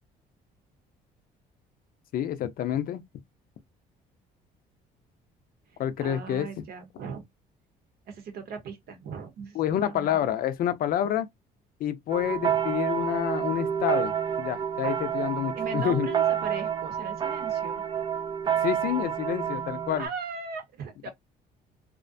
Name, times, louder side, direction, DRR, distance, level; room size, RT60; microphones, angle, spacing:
voice 1, 2.1-3.0 5.8-6.6 9.5-11.3 11.8-14.1 14.4-16.1 18.6-20.1, left 11 dB, 60° left, 0.4 m, -28 dB
voice 2, 5.7-7.2 8.1-10.3 15.5-17.8 20.0-21.1, right 5 dB, 65° right, 0.9 m, -38 dB
sound 1, 12.1-20.1, right 8 dB, 30° right, 0.4 m, -29 dB
2.4 x 2.2 x 2.5 m
cardioid pair, 110°, 17 cm